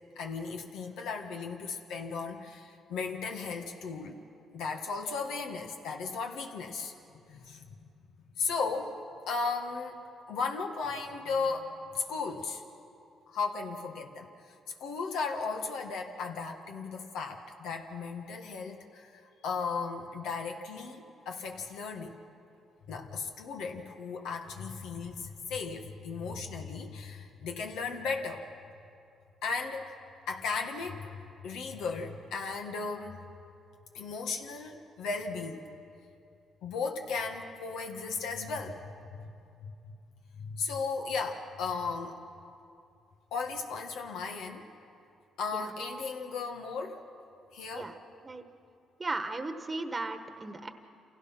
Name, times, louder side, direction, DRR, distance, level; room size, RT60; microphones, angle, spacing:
voice 1, 0.1-4.1 4.5-6.9 7.3-7.9 8.4-9.0 9.3-12.6 13.3-14.5 14.8-22.2 22.9-28.4 29.4-30.0 30.3-31.2 31.4-33.2 33.9-35.6 36.6-39.3 39.6-39.9 40.4-42.2 43.3-44.6 45.4-47.0 47.5-47.9, left 4 dB, 85° left, 3 dB, 1.8 m, -36 dB
voice 2, 49.0-50.7, right 3 dB, 25° right, 8 dB, 1.2 m, -36 dB
27.5 x 16.5 x 5.9 m, 2.5 s
cardioid pair, 90°, 0 cm